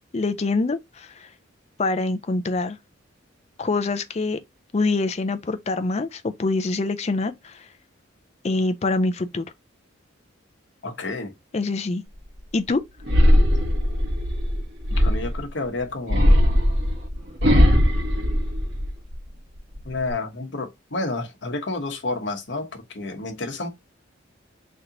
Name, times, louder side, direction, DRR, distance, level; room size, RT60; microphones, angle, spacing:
voice 1, 0.1-1.3 1.8-2.8 3.6-4.4 4.7-7.7 8.4-9.5 11.5-12.0 12.5-12.8, left 3 dB, 35° left, 0.4 m, -25 dB
voice 2, 10.8-11.3 14.9-16.3 19.8-23.7, left 2 dB, 60° left, 1.0 m, -30 dB
sound 1, 13.1-15.5 16.1-19.1 19.6-20.1, equal, 60° right, 1.3 m, -19 dB
3.2 x 2.9 x 3.7 m
head